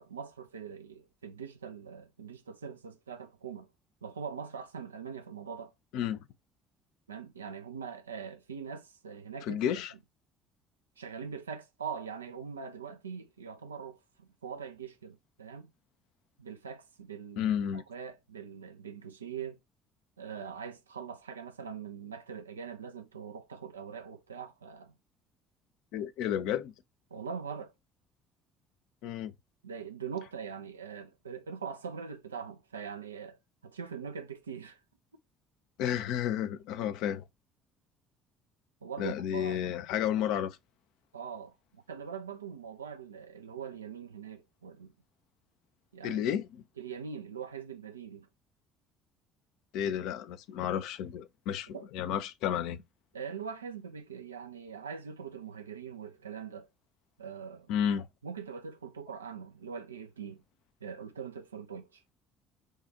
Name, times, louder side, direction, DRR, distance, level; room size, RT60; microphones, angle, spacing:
voice 1, 0.0-3.7 4.0-5.7 7.1-9.6 11.0-15.7 16.4-19.6 20.2-24.9 27.1-27.7 29.6-34.8 38.8-39.6 41.1-44.9 45.9-46.2 46.8-48.3 51.7-51.9 53.1-56.7 57.2-57.7 58.2-60.4 60.8-62.0, right 6 dB, 80° right, 0.5 m, -42 dB
voice 2, 5.9-6.3 9.4-9.9 17.4-17.8 25.9-26.7 29.0-29.3 35.8-37.2 39.0-40.6 46.0-46.6 49.7-52.8 57.7-58.1, left 9 dB, 60° left, 0.5 m, -32 dB
6.4 x 2.4 x 2.8 m
figure-of-eight pair, 55°, 0 cm